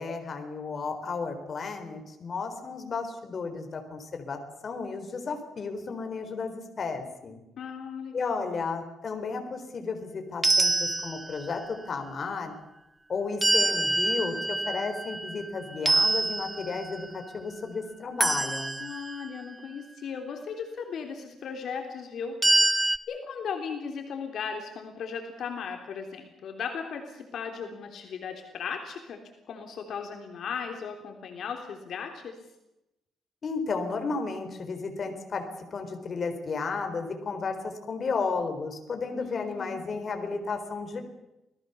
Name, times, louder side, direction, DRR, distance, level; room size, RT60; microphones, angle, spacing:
voice 1, 0.0-7.4 8.1-12.5 13.1-18.8 33.4-35.4 35.7-41.0, left 4 dB, 35° left, 6 dB, 4.1 m, -33 dB
voice 2, 7.6-8.5 18.8-22.8 23.1-29.2 29.5-32.4 39.1-39.8, left 6 dB, 60° left, 4 dB, 3.4 m, -37 dB
sound 1, 10.4-11.6 13.4-15.4 15.9-17.1 18.2-19.2 22.4-23.0, right 2 dB, 15° right, 1.0 m, -25 dB
28.0 x 19.0 x 7.0 m, 0.90 s
cardioid pair, 150°, 0 cm